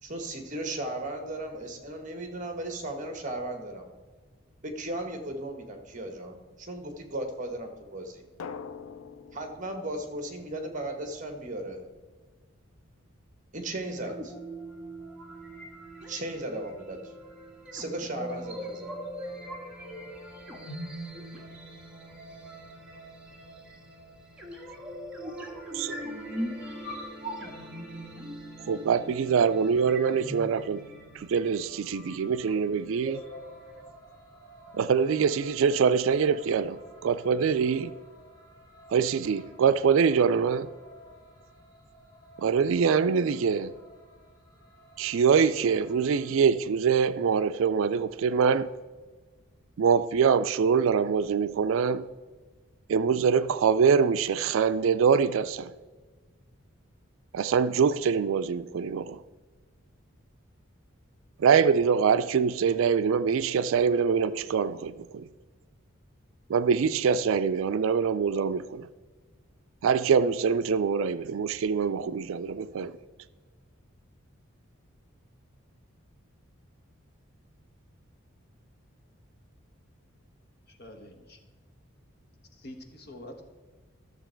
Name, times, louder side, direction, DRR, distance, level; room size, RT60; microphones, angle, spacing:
voice 1, 0.0-3.9 4.6-8.2 9.3-11.8 13.5-14.3 16.1-17.1 17.7-19.0, right 1 dB, 35° right, 1.2 m, -36 dB
Drum, 8.4-11.1, left 5 dB, 90° left, 0.5 m, -44 dB
sound 1, 13.8-33.8, equal, 5° right, 1.5 m, -41 dB
voice 2, 25.7-26.4 28.7-30.8 31.1-33.2 34.7-37.9 38.9-40.7 42.4-43.7 45.0-48.7 49.8-52.1 52.9-55.7 57.3-59.2 61.4-65.3 66.5-68.9 69.8-72.9, right 6 dB, 75° right, 0.3 m, -24 dB
sound 2, 33.1-46.3, equal, 20° left, 2.0 m, -53 dB
voice 3, 80.7-81.4 82.5-83.4, left 1 dB, 50° left, 1.2 m, -46 dB
12.5 x 6.9 x 4.5 m
head